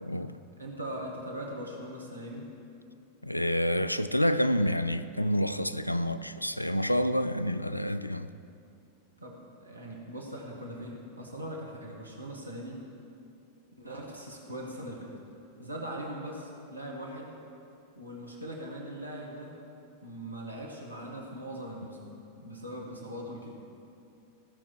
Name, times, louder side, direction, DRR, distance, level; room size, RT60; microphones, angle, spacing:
voice 1, 0.0-0.4 3.2-8.3, equal, 90° left, 0.3 m, -28 dB
voice 2, 0.6-2.4 9.2-12.8 13.8-15.1 15.6-17.3 17.9-19.5 20.0-23.5, right 1 dB, 85° right, 1.4 m, -40 dB
15.5 x 5.9 x 4.8 m
figure-of-eight pair, 90°, 0 cm